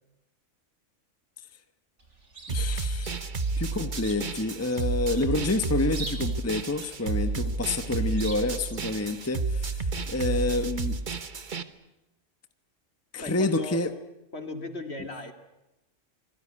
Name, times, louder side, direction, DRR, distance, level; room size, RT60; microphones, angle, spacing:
Chirp tweet, 2.0-9.6, right 2 dB, 65° right, 4.4 m, -46 dB
voice 1, 2.5-3.2 3.6-9.7 10.1-11.0 13.1-13.9, left 2 dB, 15° left, 9 dB, 1.1 m, -28 dB
sound 1, 2.5-11.6, right 3 dB, 40° right, 1.3 m, -31 dB
voice 2, 13.2-13.8 14.3-15.3, left 2 dB, 55° left, 7 dB, 2.7 m, -37 dB
26.0 x 19.5 x 9.9 m, 0.96 s
omnidirectional pair, 1.3 m